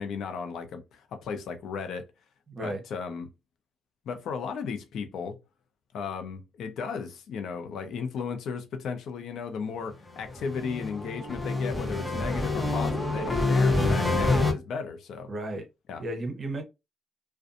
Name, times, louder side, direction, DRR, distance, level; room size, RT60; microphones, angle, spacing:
voice 1, 0.0-2.1 2.6-3.3 4.1-5.4 5.9-15.3 15.9-16.0, left 5 dB, 70° left, 0.6 m, -35 dB
voice 2, 2.5-2.8 15.3-15.7 16.0-16.6, right 1 dB, 35° right, 0.8 m, -33 dB
sound 1, 10.2-14.5, left 2 dB, 10° left, 0.8 m, -26 dB
2.5 x 2.3 x 2.5 m
cardioid pair, 90°, 0 cm